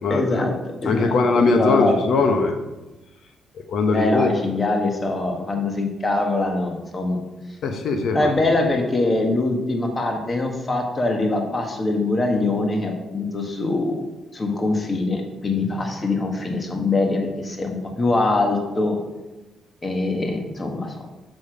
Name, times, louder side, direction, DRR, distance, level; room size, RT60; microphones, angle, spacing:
voice 1, 0.1-0.5 0.8-2.0 3.9-7.2 8.1-14.0 14.3-19.0 19.8-21.0, left 2 dB, 30° left, 2 dB, 1.6 m, -23 dB
voice 2, 0.8-2.6 3.7-4.4 7.6-8.3, left 3 dB, 65° left, 6 dB, 1.1 m, -20 dB
7.0 x 6.4 x 5.1 m, 1.1 s
cardioid pair, 90°, 0 cm